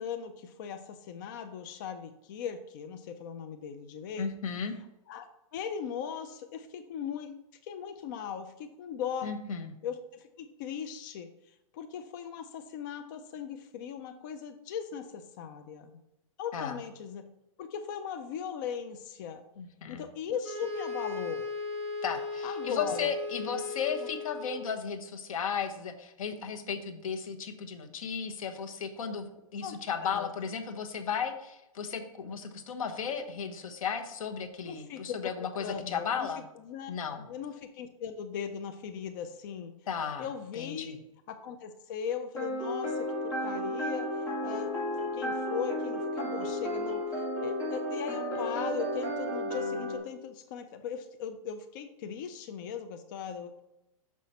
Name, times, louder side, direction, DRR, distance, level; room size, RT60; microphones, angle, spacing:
voice 1, 0.0-4.3 5.1-5.3 5.5-9.3 9.8-16.0 16.4-17.2 17.6-19.4 19.9-21.5 22.4-23.1 24.0-24.1 29.6-30.3 34.7-35.3 35.6-36.9 37.3-39.7 40.2-41.0 41.3-44.7 45.1-53.6, left 7 dB, 35° left, 8 dB, 0.4 m, -39 dB
voice 2, 4.2-4.8 9.2-9.7 16.5-16.8 19.6-20.0 22.0-36.4 36.9-37.3 39.9-40.3 40.5-41.0, left 6 dB, 75° left, 7 dB, 1.1 m, -35 dB
sound 1, 20.4-24.8, left 4 dB, 5° right, 2.6 m, -37 dB
sound 2, 42.4-50.0, left 1 dB, 15° left, 2.3 m, -33 dB
6.1 x 5.7 x 4.2 m, 0.91 s
hypercardioid pair, 165°, 18 cm